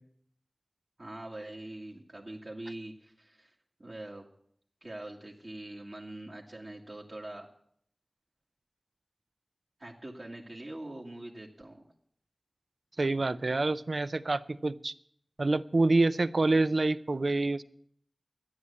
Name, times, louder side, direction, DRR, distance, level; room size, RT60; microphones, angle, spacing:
voice 1, 1.0-3.5 3.8-4.3 4.8-7.5 9.8-11.9, right 1 dB, 50° right, -3 dB, 2.0 m, -43 dB
voice 2, 13.0-14.9 15.4-17.6, right 2 dB, 70° right, 14 dB, 0.5 m, -27 dB
12.5 x 9.7 x 8.3 m, 0.66 s
wide cardioid pair, 45°, 0 cm